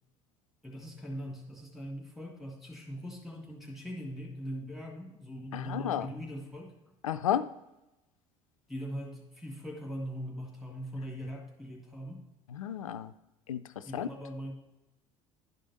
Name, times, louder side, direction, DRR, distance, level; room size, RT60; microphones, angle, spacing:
voice 1, 0.6-6.7 8.7-12.2 13.9-14.5, equal, ahead, -1 dB, 2.0 m, -41 dB
voice 2, 5.5-6.1 7.0-7.5 12.5-13.1 13.5-13.6 13.9-14.1, left 10 dB, 85° left, 13 dB, 0.4 m, -32 dB
11.5 x 5.0 x 4.1 m, 0.96 s
hypercardioid pair, 65°, 17 cm